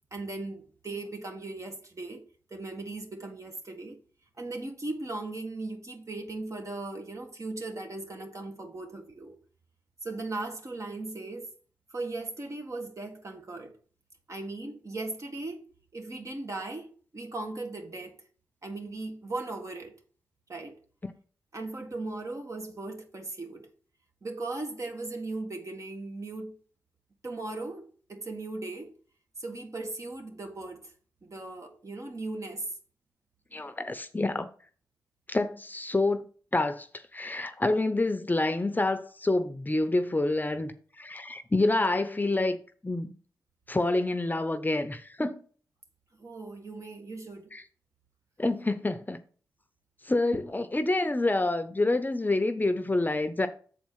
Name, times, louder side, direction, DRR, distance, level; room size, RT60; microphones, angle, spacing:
voice 1, 0.1-2.2 2.5-4.0 4.4-9.4 10.0-11.5 11.9-13.7 14.3-15.6 15.9-18.2 18.6-19.9 20.5-20.8 21.5-23.7 24.2-26.5 27.2-28.9 29.4-30.9 31.2-32.7 46.2-47.5, right 2 dB, 45° right, 1.7 m, -38 dB
voice 2, 33.5-34.5 35.3-36.2 36.5-36.9 37.1-42.6 42.8-43.1 43.7-45.4 47.5-47.6 48.4-49.2 50.1-53.5, left 2 dB, 25° left, 0.7 m, -27 dB
7.1 x 4.3 x 5.6 m
cardioid pair, 45°, 7 cm